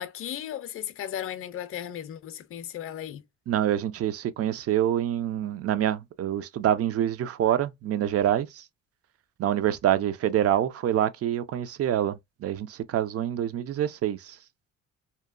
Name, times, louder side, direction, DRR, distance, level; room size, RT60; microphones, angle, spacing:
voice 1, 0.0-3.2, left 10 dB, 45° left, 0.5 m, -35 dB
voice 2, 3.5-8.6 9.4-14.4, right 11 dB, 50° right, 0.4 m, -26 dB
2.8 x 2.1 x 2.4 m
cardioid pair, 90°, 30 cm